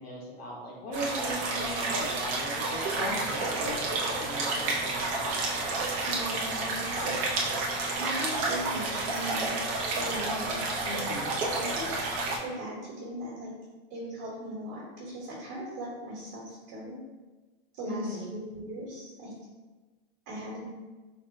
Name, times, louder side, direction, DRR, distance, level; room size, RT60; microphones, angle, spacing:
voice 1, 0.0-3.8 4.1-5.5 10.8-11.3 17.8-18.3, equal, 85° left, -4 dB, 1.4 m, -38 dB
sound 1, 0.9-12.4, right 2 dB, 25° right, 0.6 m, -30 dB
voice 2, 6.0-7.1 7.9-10.6 11.5-11.9 12.4-13.5 13.9-17.0 17.8-19.3 20.3-20.6, right 1 dB, 45° right, -6 dB, 1.2 m, -38 dB
3.3 x 2.1 x 4.0 m, 1.3 s
supercardioid pair, 150°, 30 cm